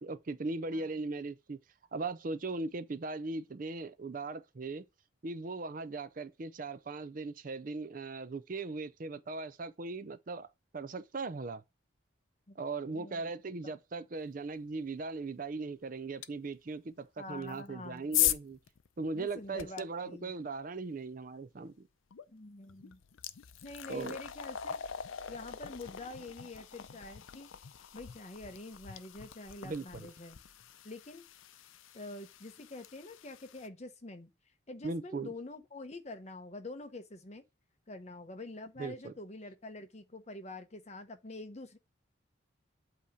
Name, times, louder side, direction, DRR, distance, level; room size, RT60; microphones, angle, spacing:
voice 1, 0.0-1.6 1.9-4.8 5.2-11.6 12.6-18.6 19.0-21.9 23.9-24.2 29.6-30.1 34.8-35.3 38.8-39.1, right 3 dB, 40° right, 0.5 m, -39 dB
voice 2, 12.9-13.2 13.6-13.7 17.2-18.2 19.1-20.3 22.3-23.0 23.6-24.8 25.3-27.5 27.9-30.4 30.8-31.2 31.9-34.3 34.7-37.4 37.9-41.8, left 2 dB, 35° left, 0.8 m, -46 dB
sound 1, 16.2-16.3 17.4-19.8 22.1-22.3 22.7-33.7, left 12 dB, 80° left, 0.5 m, -39 dB
8.3 x 2.9 x 4.9 m
head